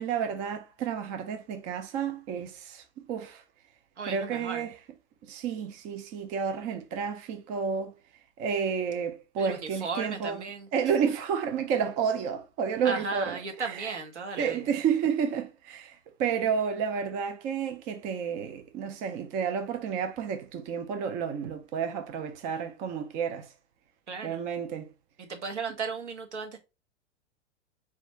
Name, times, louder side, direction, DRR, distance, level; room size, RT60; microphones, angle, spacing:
voice 1, 0.0-3.4 4.0-4.8 5.2-7.9 8.4-10.4 10.7-14.0 14.4-23.5 24.2-24.9, right 7 dB, 25° right, 0.4 m, -31 dB
voice 2, 4.0-4.6 9.4-10.7 12.8-14.7 24.1-24.4 25.2-26.6, right 4 dB, 70° right, 1.3 m, -35 dB
4.3 x 2.4 x 4.3 m
figure-of-eight pair, 100°, 36 cm